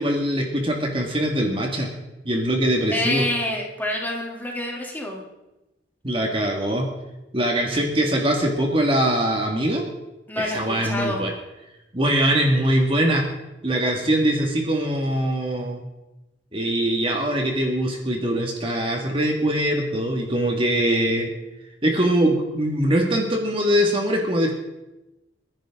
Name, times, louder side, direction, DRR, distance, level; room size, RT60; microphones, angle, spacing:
voice 1, 0.0-1.9 2.2-3.2 6.0-6.9 7.3-9.9 10.4-11.3 11.9-13.2 13.6-15.8 16.5-21.3 21.8-24.5, right 1 dB, 30° right, 1 dB, 2.0 m, -22 dB
voice 2, 2.9-5.2 10.3-11.2, left 1 dB, 10° left, -2 dB, 3.0 m, -27 dB
30.0 x 10.5 x 3.8 m, 0.98 s
head